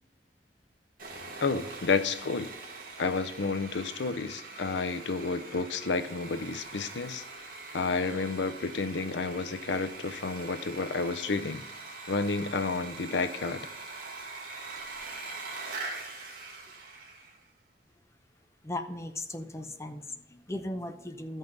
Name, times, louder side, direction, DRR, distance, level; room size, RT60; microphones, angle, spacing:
Sawing, 1.0-17.4, right 3 dB, 55° right, 2.0 m, -43 dB
voice 1, 1.4-2.5 3.0-7.2 7.7-11.6 12.1-13.7, left 4 dB, 90° left, 12 dB, 0.6 m, -30 dB
voice 2, 18.6-21.4, left 1 dB, 15° left, 6 dB, 0.7 m, -37 dB
13.5 x 5.4 x 3.9 m, 0.92 s
head